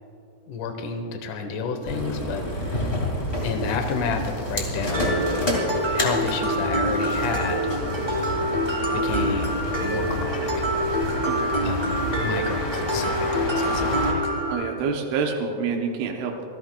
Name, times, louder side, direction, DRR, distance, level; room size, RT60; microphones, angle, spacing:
voice 1, 0.5-3.0 3.4-5.3 5.9-7.8 8.9-10.7 11.6-14.2, left 5 dB, 85° left, 5 dB, 1.8 m, -31 dB
sound 1, 1.8-14.1, left 1 dB, 25° left, 1.3 m, -29 dB
Mallet percussion, 4.9-14.5, right 1 dB, 35° right, 0.8 m, -26 dB
voice 2, 11.3-11.6 14.5-16.4, right 5 dB, 85° right, 1 dB, 3.3 m, -27 dB
26.5 x 16.0 x 2.3 m, 2.6 s
omnidirectional pair, 5.3 m